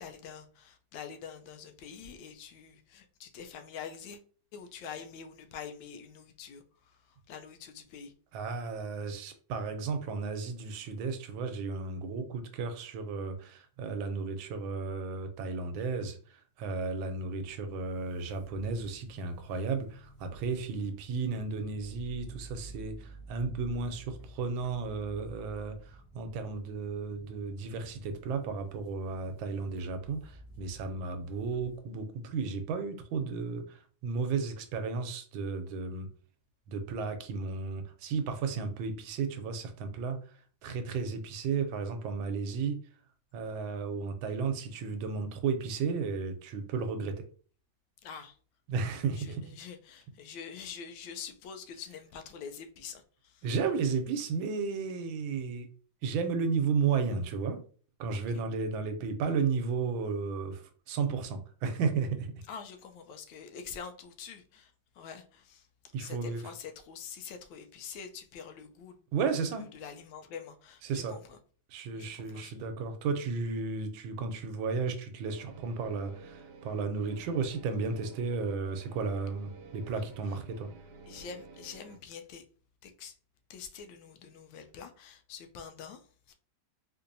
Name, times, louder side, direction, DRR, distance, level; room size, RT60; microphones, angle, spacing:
voice 1, 0.0-4.2 4.5-8.1 48.0-48.4 49.2-53.5 58.1-58.2 62.5-65.7 66.0-71.4 71.9-72.5 80.2-80.4 81.1-82.4 82.8-83.2 83.5-86.3, left 7 dB, 85° left, 1.3 m, -46 dB
voice 2, 8.3-36.1 36.7-40.2 40.6-42.8 43.3-47.2 48.7-49.5 53.4-55.7 56.0-57.6 58.0-62.3 65.9-66.4 69.1-69.8 70.8-71.2 71.7-80.7, right 5 dB, 90° right, 1.4 m, -33 dB
sound 1, 17.1-31.8, right 2 dB, 70° left, 1.7 m, -51 dB
sound 2, 75.2-82.0, right 3 dB, 75° right, 1.2 m, -52 dB
4.2 x 2.6 x 2.6 m
omnidirectional pair, 2.1 m